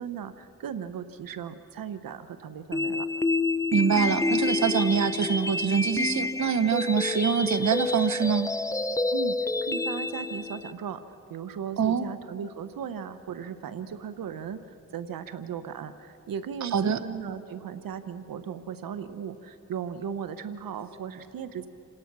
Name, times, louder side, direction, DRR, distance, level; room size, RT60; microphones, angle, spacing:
voice 1, 0.0-3.1 9.1-11.0 11.3-21.7, right 7 dB, 80° right, 11 dB, 0.9 m, -37 dB
sound 1, 2.7-10.7, left 3 dB, 10° left, 0.5 m, -28 dB
voice 2, 3.7-8.5 11.8-12.1 16.6-17.0, right 7 dB, 55° right, 12 dB, 1.0 m, -25 dB
28.0 x 18.5 x 6.1 m, 2.9 s
cardioid pair, 60°, 34 cm